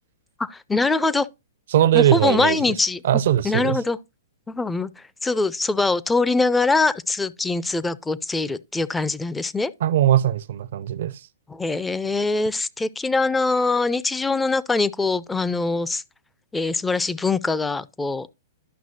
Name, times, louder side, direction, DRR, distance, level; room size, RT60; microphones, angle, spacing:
voice 1, 0.4-1.3 1.9-3.0 3.4-4.0 4.5-4.9 5.2-9.7 11.5-16.0 16.5-18.3, left 3 dB, 10° left, 0.4 m, -23 dB
voice 2, 1.7-2.6 3.0-3.8 9.8-11.2, right 11 dB, 55° right, 0.5 m, -20 dB
11.0 x 6.0 x 2.7 m
figure-of-eight pair, 115°, 0 cm